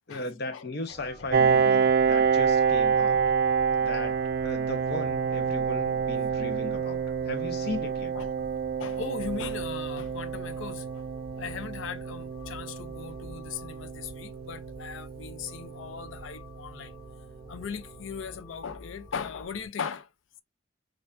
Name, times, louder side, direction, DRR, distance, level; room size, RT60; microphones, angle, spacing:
voice 1, 0.1-3.2 3.8-4.1 4.4-8.1, left 2 dB, 55° left, 0.8 m, -37 dB
sound 1, 0.9-19.7, equal, 20° left, 2.0 m, -48 dB
Piano, 1.3-16.7, right 6 dB, 50° right, 0.4 m, -28 dB
voice 2, 8.1-8.5 8.8-11.0 11.4-16.9 17.5-20.1, left 6 dB, 80° left, 0.5 m, -38 dB
4.5 x 2.5 x 2.5 m
head